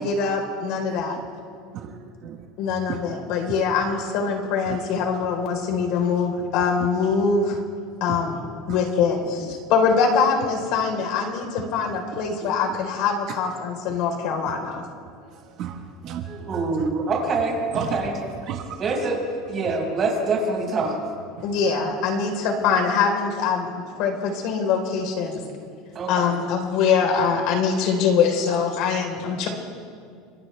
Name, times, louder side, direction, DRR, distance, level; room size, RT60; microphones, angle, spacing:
voice 1, 0.0-1.2 2.6-7.6 8.0-8.4 8.7-14.8 21.4-23.7 24.0-25.4 26.1-29.5, left 5 dB, 55° left, 2 dB, 4.2 m, -23 dB
voice 2, 2.2-3.0 3.5-3.6 4.7-4.8 7.5-7.6 8.1-8.2 8.7-8.8 9.4-9.6 11.5-12.5 14.4-14.5 15.2-17.0 17.7-17.9 18.5-18.8 21.4-21.5, right 9 dB, 45° right, 4 dB, 1.4 m, -35 dB
voice 3, 16.3-18.2 18.8-19.2 19.5-21.0 25.9-26.4, right 3 dB, 30° right, -1 dB, 5.9 m, -25 dB
30.0 x 26.0 x 3.5 m, 2.2 s
supercardioid pair, 155°, 0 cm